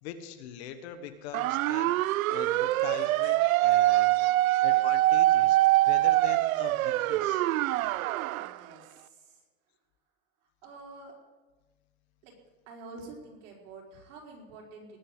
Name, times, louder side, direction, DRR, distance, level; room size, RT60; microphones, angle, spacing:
voice 1, 0.0-2.0 2.3-4.3 4.6-5.6 5.8-7.5, left 9 dB, 50° left, 9 dB, 1.4 m, -42 dB
sound 1, 1.3-8.5, right 16 dB, 85° right, 0.6 m, -24 dB
voice 2, 8.3-9.4 10.6-11.1 12.2-12.3 12.7-15.0, right 3 dB, 60° right, -1 dB, 4.9 m, -48 dB
19.5 x 6.8 x 8.0 m, 1.2 s
supercardioid pair, 165°, 41 cm